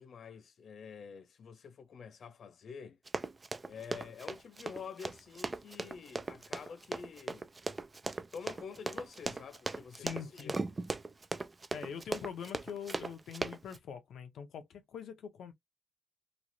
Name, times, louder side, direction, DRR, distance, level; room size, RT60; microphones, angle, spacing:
voice 1, 0.0-3.0 3.7-7.5 8.3-10.6, left 6 dB, 60° left, 0.5 m, -48 dB
Run, 3.1-13.8, right 3 dB, 25° right, 0.3 m, -38 dB
voice 2, 10.0-10.6 11.7-15.5, left 7 dB, 85° left, 0.7 m, -43 dB
3.1 x 2.4 x 2.6 m
cardioid pair, 120°, 0 cm